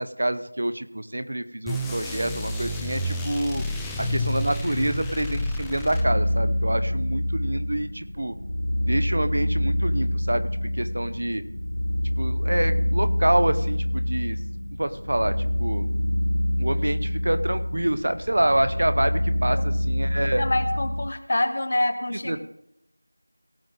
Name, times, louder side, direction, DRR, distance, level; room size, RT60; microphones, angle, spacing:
voice 1, 0.0-3.6 4.0-8.3 8.9-11.4 12.2-14.4 14.8-15.9 16.6-20.4 22.3-22.4, right 1 dB, 45° right, 11 dB, 0.8 m, -27 dB
sound 1, 1.7-6.5, left 1 dB, ahead, 0.4 m, -30 dB
sound 2, 5.9-21.1, left 1 dB, 60° left, 0.6 m, -26 dB
voice 2, 20.2-22.4, left 1 dB, 35° left, 9 dB, 0.9 m, -26 dB
17.5 x 7.6 x 3.7 m, 0.79 s
figure-of-eight pair, 175°, 0 cm